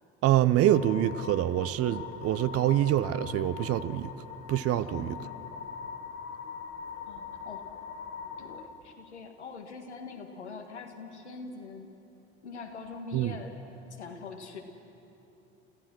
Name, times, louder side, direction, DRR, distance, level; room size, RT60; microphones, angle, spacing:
voice 1, 0.2-4.1 4.5-5.2 13.1-13.4, right 12 dB, 45° right, 15 dB, 0.8 m, -25 dB
sound 1, 0.6-8.7, left 7 dB, 45° left, 1.9 m, -42 dB
voice 2, 4.7-5.6 7.1-7.7 8.4-11.9 12.4-13.6 13.9-14.6, left 4 dB, 80° left, 4 dB, 1.7 m, -44 dB
29.0 x 15.0 x 6.1 m, 3.0 s
figure-of-eight pair, 60°, 33 cm